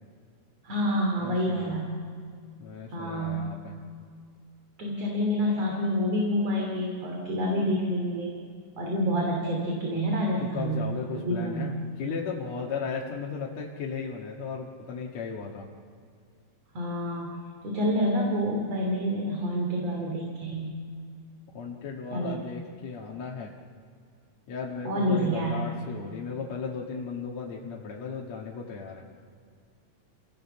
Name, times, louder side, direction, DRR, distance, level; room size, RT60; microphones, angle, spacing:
voice 1, 0.6-1.9 2.9-3.4 4.8-8.3 8.8-11.8 16.7-17.4 17.6-20.8 22.1-22.6 24.9-25.8, equal, 50° right, 0 dB, 3.8 m, -28 dB
voice 2, 1.2-1.8 2.6-3.8 10.4-15.7 21.5-23.5 24.5-29.1, left 5 dB, 60° left, -2 dB, 2.8 m, -36 dB
28.5 x 17.0 x 7.2 m, 2.2 s
omnidirectional pair, 3.8 m